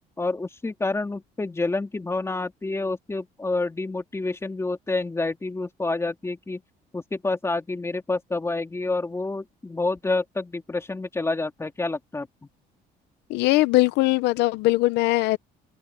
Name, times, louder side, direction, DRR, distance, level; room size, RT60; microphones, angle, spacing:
voice 1, 0.2-6.6 6.9-12.3, left 3 dB, 15° left, 2.8 m, -28 dB
voice 2, 13.3-15.4, left 19 dB, 90° left, 0.7 m, -20 dB
cardioid pair, 110°, 17 cm